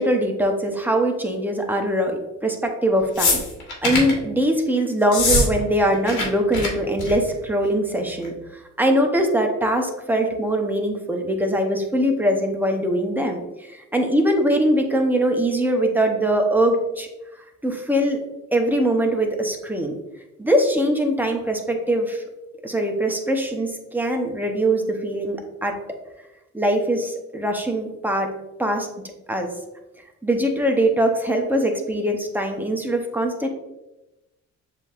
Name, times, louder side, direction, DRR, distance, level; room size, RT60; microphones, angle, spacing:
voice 1, 0.0-3.4 3.8-17.1 17.6-18.2 18.5-19.9 20.4-22.2 22.6-25.8 26.5-28.3 28.6-28.9 29.3-29.5 30.2-33.5, right 1 dB, 5° right, 2 dB, 0.7 m, -22 dB
sound 1, 3.2-4.2 5.0-5.5 5.7-6.3 6.5-6.7 7.0-7.3 8.2-8.3, left 2 dB, 75° left, 1.5 m, -21 dB
7.4 x 2.8 x 2.4 m, 0.99 s
cardioid pair, 90°, 30 cm